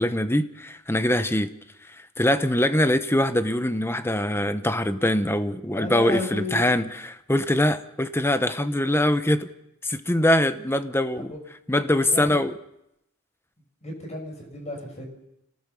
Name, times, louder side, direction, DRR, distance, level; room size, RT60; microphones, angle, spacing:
voice 1, 0.0-1.5 2.2-9.5 9.8-11.3 11.7-12.5, left 1 dB, 10° left, 11 dB, 1.0 m, -23 dB
voice 2, 5.7-6.7 11.2-11.4 11.9-12.4 13.8-15.1, left 1 dB, 30° left, 2 dB, 6.4 m, -33 dB
28.5 x 18.0 x 7.0 m, 0.83 s
head